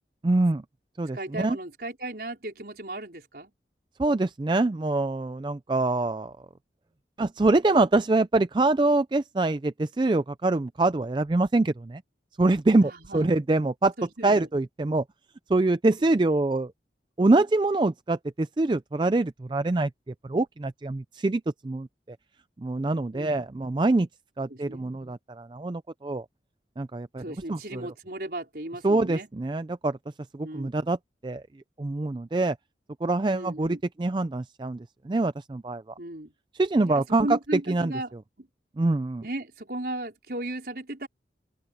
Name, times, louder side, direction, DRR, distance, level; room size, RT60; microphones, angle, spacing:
voice 1, 0.2-0.6 1.0-1.6 4.0-6.4 7.2-12.0 12.4-13.9 14.2-15.0 15.5-16.7 17.2-22.2 22.6-24.1 24.4-26.3 26.8-27.9 28.8-30.0 30.3-31.0 31.2-31.4 31.8-32.6 33.0-35.8 36.5-37.4 37.7-37.9 38.8-39.2, right 2 dB, 25° right, 0.4 m, -25 dB
voice 2, 1.1-3.5 12.8-13.3 14.0-14.5 23.1-23.4 24.5-24.8 27.2-29.3 30.4-30.7 33.3-33.8 36.0-36.3 36.8-38.1 38.4-38.5 39.2-41.1, right 1 dB, 60° right, 4.9 m, -36 dB
open air
head